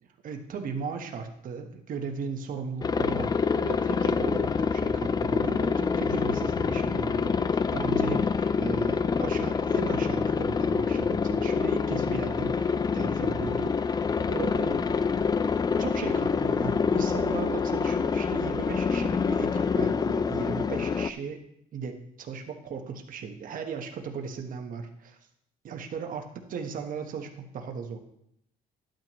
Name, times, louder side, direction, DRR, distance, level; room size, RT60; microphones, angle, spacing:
voice 1, 0.2-14.0 14.3-14.9 15.8-21.4 21.7-25.2 25.6-28.0, right 5 dB, 55° right, 4 dB, 1.3 m, -37 dB
Aircraft, 2.8-21.1, left 5 dB, 25° left, 0.4 m, -26 dB
12.0 x 9.1 x 3.1 m, 0.75 s
cardioid pair, 110°, 17 cm